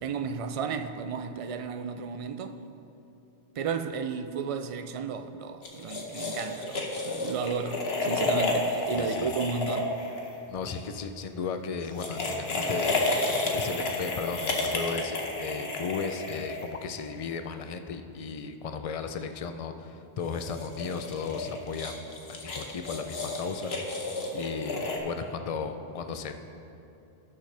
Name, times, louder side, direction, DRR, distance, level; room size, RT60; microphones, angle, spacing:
voice 1, 0.0-2.6 3.6-9.9, right 5 dB, 50° right, 0.4 m, -33 dB
sound 1, 5.6-10.8 11.8-17.0 20.2-25.0, left 2 dB, 75° left, 1.3 m, -31 dB
voice 2, 8.9-9.3 10.5-13.0 13.5-24.0 24.3-26.3, left 5 dB, 45° left, 0.5 m, -35 dB
18.5 x 6.3 x 3.3 m
omnidirectional pair, 1.0 m